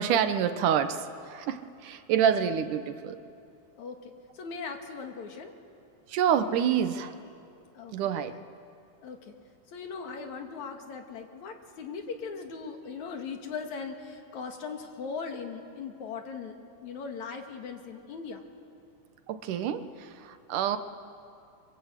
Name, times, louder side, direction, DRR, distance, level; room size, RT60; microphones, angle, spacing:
voice 1, 0.0-3.2 6.1-7.1 7.9-8.4 19.3-20.8, right 8 dB, 80° right, 10 dB, 2.6 m, -27 dB
voice 2, 3.8-5.5 7.7-7.9 9.0-9.3 9.7-16.5 16.8-18.4, left 5 dB, 65° left, 4 dB, 3.1 m, -39 dB
28.5 x 24.5 x 8.3 m, 2.5 s
omnidirectional pair, 3.6 m